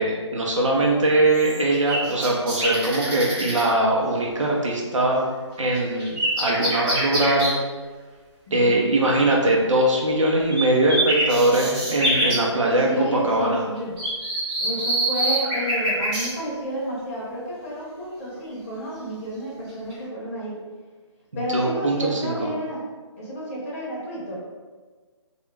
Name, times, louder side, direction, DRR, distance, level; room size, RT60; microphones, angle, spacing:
voice 1, 0.0-5.3 5.6-7.5 8.5-13.6 21.5-22.3, right 1 dB, 90° right, -2 dB, 0.5 m, -21 dB
sound 1, 1.3-3.7 5.7-7.5 10.5-10.6 10.9-12.4 14.0-16.3 19.7-19.9, right 1 dB, 10° right, 0.4 m, -25 dB
voice 2, 8.5-8.9 12.8-13.9 14.6-20.6 21.3-22.8 23.2-24.4, right 1 dB, 30° left, -6 dB, 0.6 m, -30 dB
2.2 x 2.0 x 3.2 m, 1.4 s
figure-of-eight pair, 150°, 16 cm